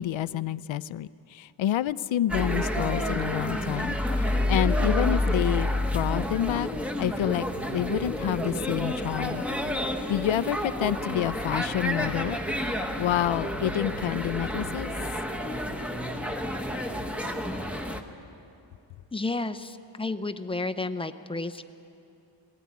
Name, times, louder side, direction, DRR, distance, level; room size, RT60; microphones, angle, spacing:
voice 1, 0.0-6.7 7.0-7.5 7.7-9.4 10.1-12.4 12.6-12.7 13.0-14.9, left 12 dB, 85° left, 17 dB, 0.6 m, -28 dB
sound 1, 2.3-18.0, left 1 dB, 5° right, 0.9 m, -29 dB
voice 2, 19.1-21.6, left 3 dB, 10° left, 10 dB, 0.5 m, -31 dB
19.5 x 16.5 x 9.5 m, 2.7 s
wide cardioid pair, 170°, 45 cm